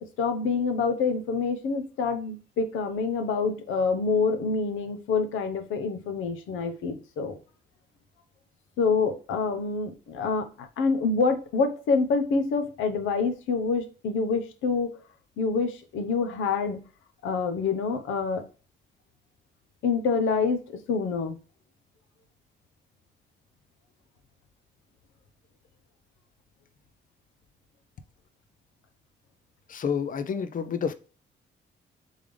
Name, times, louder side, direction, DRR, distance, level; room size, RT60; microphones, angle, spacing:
voice 1, 0.2-7.4 8.8-14.9 15.4-16.8 17.2-18.5 19.8-21.4, left 4 dB, 85° left, 0.9 m, -26 dB
voice 2, 29.7-30.9, left 6 dB, 45° left, 0.6 m, -29 dB
3.7 x 3.5 x 3.3 m
cardioid pair, 90°, 20 cm